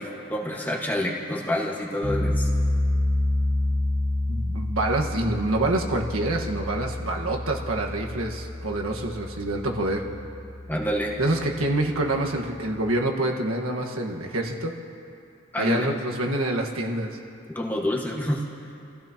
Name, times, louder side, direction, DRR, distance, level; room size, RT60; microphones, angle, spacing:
voice 1, 0.0-2.5 10.7-11.2 15.5-15.9 17.5-18.4, left 1 dB, 10° left, -2 dB, 1.6 m, -28 dB
sound 1, 2.0-12.9, left 1 dB, 20° right, 1.8 m, -29 dB
voice 2, 4.3-10.0 11.2-14.7 15.6-17.2, right 1 dB, 90° right, 1 dB, 1.6 m, -26 dB
29.0 x 15.5 x 3.0 m, 2.6 s
head